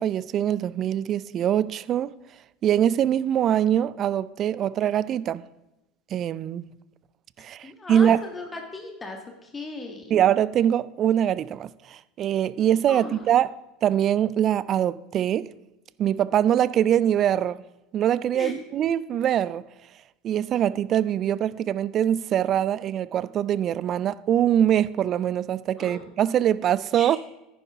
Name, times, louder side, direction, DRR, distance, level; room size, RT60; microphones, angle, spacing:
voice 1, 0.0-2.1 2.6-5.4 6.1-6.6 7.4-8.2 10.1-13.6 13.8-15.5 16.0-17.6 17.9-19.6 20.2-27.2, right 10 dB, 40° right, 0.4 m, -23 dB
voice 2, 7.6-10.2 12.9-13.3 18.3-18.5 25.8-26.0 27.0-27.1, left 3 dB, 20° left, 1.6 m, -37 dB
10.5 x 9.5 x 3.5 m
hypercardioid pair, 75°, 0 cm